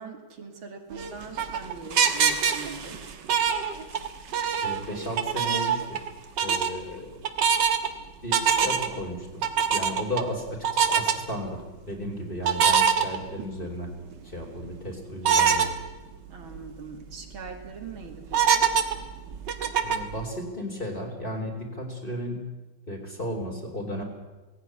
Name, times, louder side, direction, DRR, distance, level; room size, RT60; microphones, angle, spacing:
voice 1, 0.0-3.0 16.3-18.7, right 4 dB, 80° right, 3 dB, 3.3 m, -41 dB
sound 1, 0.9-4.1 4.3-6.1 6.4-6.7 7.2-7.9 8.3-9.0 9.4-10.2 10.6-11.1 12.4-13.7 14.1-14.2 15.2-15.7 16.2-16.3 16.5-16.6 17.1-17.5 18.3-20.1, right 7 dB, 60° right, 2.0 m, -23 dB
voice 2, 4.6-6.0 6.4-7.1 8.2-9.4 9.7-11.6 11.9-13.9 14.2-15.8 19.8-22.4 22.9-24.0, equal, 25° left, 1 dB, 4.2 m, -34 dB
18.5 x 16.5 x 9.6 m, 1.2 s
omnidirectional pair, 2.2 m